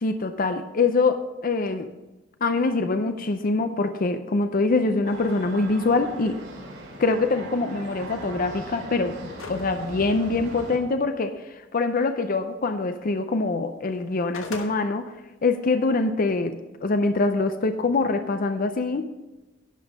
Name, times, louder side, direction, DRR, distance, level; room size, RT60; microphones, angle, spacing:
voice 1, 0.0-1.9 2.4-6.4 7.0-9.2 9.5-15.1 15.4-19.0, left 3 dB, 45° left, 9 dB, 0.5 m, -24 dB
sound 1, 5.0-10.8, right 1 dB, 60° right, 2.7 m, -39 dB
sound 2, 9.4-9.7 10.1-10.2 14.0-14.7, left 4 dB, 80° left, 1.3 m, -37 dB
11.0 x 5.5 x 6.2 m, 1.1 s
head